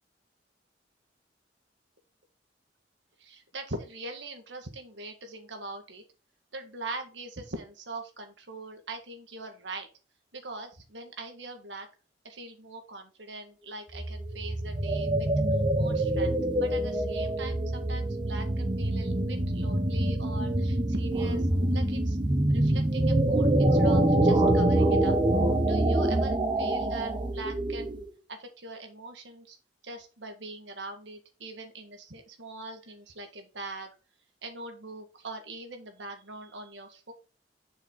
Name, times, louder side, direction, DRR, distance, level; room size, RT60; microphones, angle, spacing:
voice 1, 3.2-6.0 6.5-9.9 10.3-11.9 12.2-15.3 15.7-22.2 22.5-25.2 25.6-29.6 29.8-33.9 34.4-37.1, right 2 dB, 85° right, 5 dB, 1.8 m, -42 dB
sound 1, 13.9-28.1, right 1 dB, 25° right, 0.9 m, -25 dB
7.5 x 5.7 x 4.0 m, 0.34 s
head